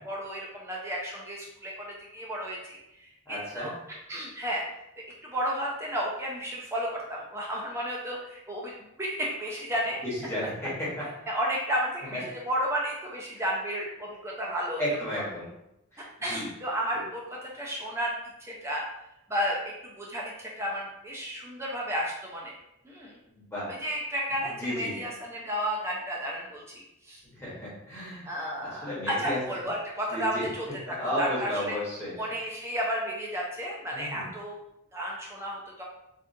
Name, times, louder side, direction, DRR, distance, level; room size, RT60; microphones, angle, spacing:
voice 1, 0.0-3.7 4.1-4.6 5.2-10.0 11.3-14.9 15.2-15.3 16.0-18.1 18.4-18.8 19.3-22.5 22.8-23.2 23.7-27.2 28.3-31.8 32.2-34.6 34.9-35.8, equal, 10° right, -3 dB, 0.4 m, -32 dB
voice 2, 3.3-3.7 10.0-11.0 12.1-12.2 13.4-13.5 14.8-15.4 15.9-16.5 23.3-23.7 24.4-24.9 27.3-28.3 28.6-29.4 30.1-30.5 30.9-32.1 33.9-34.3, left 1 dB, 10° left, -7 dB, 1.0 m, -33 dB
3.6 x 2.4 x 2.6 m, 0.86 s
head